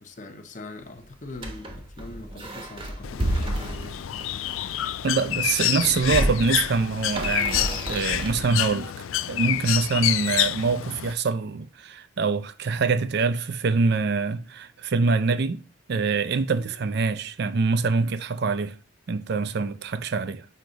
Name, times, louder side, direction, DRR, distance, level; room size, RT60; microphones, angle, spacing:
voice 1, 0.0-5.0, left 2 dB, 40° left, 0.7 m, -42 dB
sound 1, 1.3-5.0 5.6-8.7, right 1 dB, 25° right, 0.9 m, -31 dB
Bird, 3.0-11.1, left 13 dB, 85° left, 0.3 m, -28 dB
voice 2, 5.0-15.6 15.9-18.8 19.1-20.5, right 4 dB, 55° right, 0.4 m, -25 dB
6.4 x 4.7 x 3.9 m
head